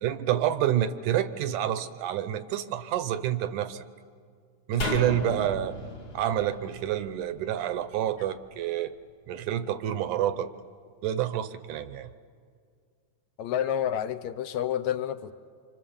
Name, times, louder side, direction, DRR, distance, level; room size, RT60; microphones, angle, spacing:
voice 1, 0.0-3.8 4.7-5.8 6.1-8.9 9.3-10.5 11.0-12.1, right 11 dB, 75° right, 12 dB, 2.2 m, -28 dB
sound 1, 4.8-8.1 8.4-8.5, left 1 dB, 40° left, 1.7 m, -35 dB
voice 2, 13.4-15.3, left 10 dB, 70° left, 9 dB, 2.0 m, -29 dB
28.5 x 26.0 x 7.1 m, 2.1 s
omnidirectional pair, 3.7 m